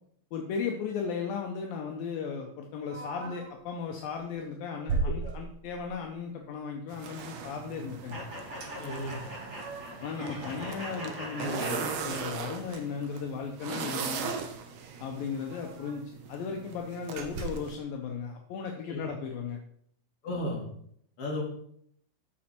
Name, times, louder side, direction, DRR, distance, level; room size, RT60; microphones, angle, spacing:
voice 1, 0.3-8.3 10.0-14.4 15.0-16.0 16.3-19.6, left 6 dB, 75° left, 2 dB, 2.6 m, -36 dB
sound 1, 2.9-3.6 4.1-4.3 4.9-6.0 8.6-8.7 9.1-10.1 10.5-12.4 12.7-12.8 13.1-13.3 14.4-14.5 14.7-14.8 15.3-16.2 16.6-16.8 17.2-17.8, right 3 dB, 55° right, 2.7 m, -38 dB
sound 2, 6.9-17.8, right 6 dB, 70° right, 1.6 m, -39 dB
sound 3, 8.1-12.7, equal, 25° right, 3.6 m, -41 dB
voice 2, 8.8-9.2 18.8-19.0 20.2-20.7 21.2-21.4, left 1 dB, 40° left, -2 dB, 3.3 m, -34 dB
13.0 x 6.4 x 4.4 m, 0.67 s
omnidirectional pair, 4.4 m